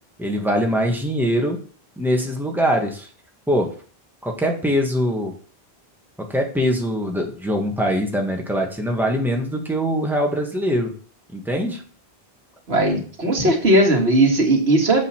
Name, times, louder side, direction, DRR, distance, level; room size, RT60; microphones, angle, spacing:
voice 1, 0.2-1.6 2.0-3.1 3.5-3.7 4.2-5.3 6.3-10.9 11.3-11.8, equal, ahead, 1 dB, 1.6 m, -22 dB
voice 2, 12.7-15.0, right 1 dB, 90° right, 1 dB, 2.3 m, -17 dB
7.5 x 5.6 x 5.9 m, 0.43 s
omnidirectional pair, 1.0 m